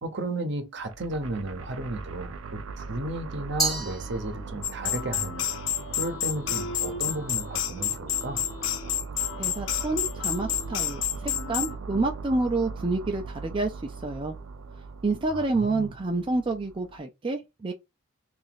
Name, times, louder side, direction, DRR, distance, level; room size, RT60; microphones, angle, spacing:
voice 1, 0.0-5.5 5.9-8.4 15.3-15.9, right 1 dB, 55° right, 0.8 m, -34 dB
sound 1, 0.8-17.0, right 4 dB, 90° right, 0.5 m, -40 dB
Glass, 3.6-4.8, right 3 dB, ahead, 0.8 m, -31 dB
sound 2, 4.6-11.8, left 10 dB, 60° left, 0.5 m, -30 dB
voice 2, 9.4-14.3 15.0-17.7, right 2 dB, 25° right, 0.4 m, -28 dB
2.9 x 2.5 x 4.0 m
head